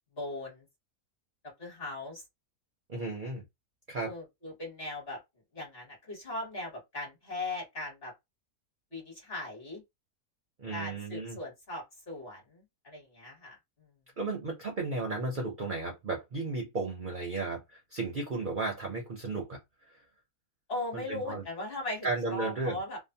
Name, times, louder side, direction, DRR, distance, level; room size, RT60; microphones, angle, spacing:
voice 1, 0.1-0.6 1.6-2.2 4.0-5.2 5.5-8.1 8.9-9.8 10.7-13.6 20.7-23.0, left 2 dB, 45° left, 1.3 m, -39 dB
voice 2, 2.9-3.4 3.9-4.1 10.6-11.4 14.2-19.6 20.9-21.4 22.0-22.8, right 3 dB, 55° right, 0.5 m, -34 dB
2.8 x 2.1 x 2.7 m
omnidirectional pair, 1.6 m